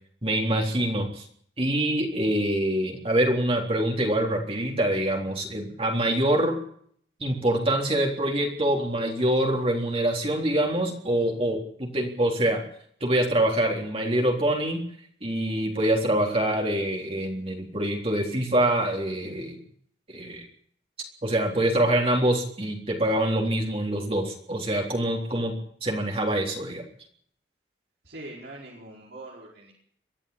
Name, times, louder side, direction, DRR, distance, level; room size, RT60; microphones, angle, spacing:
voice 1, 0.2-1.2 1.6-6.6 7.2-12.6 13.0-14.8 15.2-19.6 20.1-20.4 21.2-26.9, right 1 dB, 35° right, 0 dB, 3.7 m, -25 dB
voice 2, 28.0-29.7, right 2 dB, 75° right, -4 dB, 5.1 m, -42 dB
23.0 x 14.0 x 8.6 m, 0.63 s
head